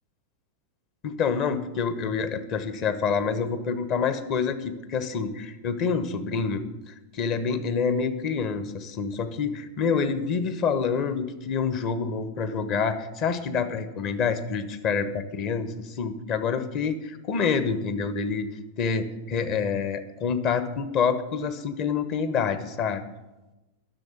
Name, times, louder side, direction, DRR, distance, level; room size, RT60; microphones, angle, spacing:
voice 1, 1.0-6.6 7.1-18.5 18.8-23.0, left 5 dB, 40° left, 10 dB, 1.1 m, -27 dB
10.5 x 6.9 x 9.1 m, 1.1 s
figure-of-eight pair, 90°, 0 cm